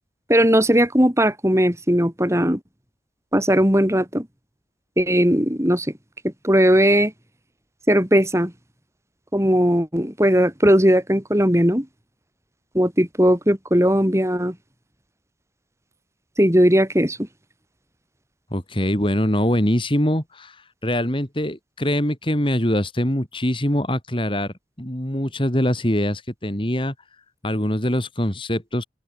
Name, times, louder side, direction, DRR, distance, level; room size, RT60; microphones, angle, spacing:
voice 1, 0.3-2.6 3.3-4.3 5.0-5.9 6.4-7.1 7.9-8.5 9.3-11.9 12.7-14.5 16.4-17.2, equal, 15° right, 6.1 m, -18 dB
voice 2, 18.5-26.9 27.4-28.8, equal, 30° left, 4.1 m, -23 dB
open air
head